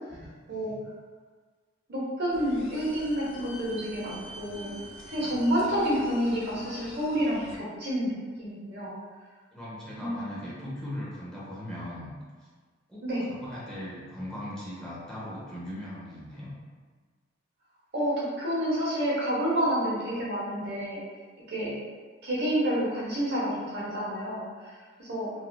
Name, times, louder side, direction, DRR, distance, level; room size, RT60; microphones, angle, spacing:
voice 1, 0.5-0.8 5.1-5.4 9.5-12.1 12.4-12.5 12.9-16.5 21.6-21.7, left 1 dB, 5° left, -8 dB, 0.7 m, -39 dB
voice 2, 1.9-4.7 5.1-9.0 10.0-10.5 13.0-13.3 17.9-21.0 21.5-21.8 22.2-24.7 25.0-25.3, equal, 60° right, -6 dB, 0.9 m, -29 dB
sound 1, 2.3-7.6, equal, 85° left, 0.5 m, -45 dB
3.1 x 2.6 x 2.2 m, 1.5 s
head